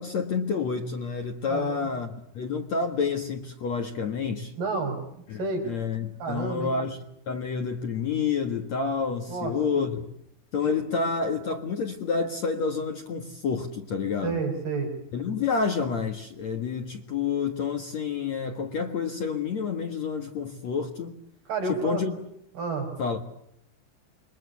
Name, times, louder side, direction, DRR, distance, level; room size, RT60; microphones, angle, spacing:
voice 1, 0.0-4.5 5.3-10.0 10.5-14.4 15.1-21.2 21.6-22.1 23.0-23.2, left 5 dB, 55° left, 6 dB, 2.0 m, -29 dB
voice 2, 1.5-1.9 4.6-5.0 5.4-5.7 6.2-6.7 9.3-9.5 14.2-15.0 21.5-22.0 22.6-22.9, right 4 dB, 55° right, 5 dB, 7.5 m, -30 dB
28.0 x 23.0 x 8.3 m, 0.73 s
omnidirectional pair, 5.5 m